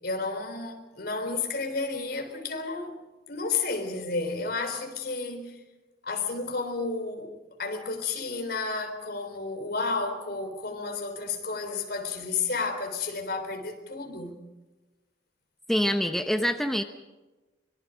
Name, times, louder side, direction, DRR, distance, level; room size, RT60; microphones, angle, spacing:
voice 1, 0.0-3.0 3.3-5.6 6.0-7.3 7.6-14.4, left 4 dB, 60° left, 3.8 m, -31 dB
voice 2, 15.7-16.8, equal, ahead, 0.9 m, -25 dB
24.5 x 23.5 x 5.1 m
head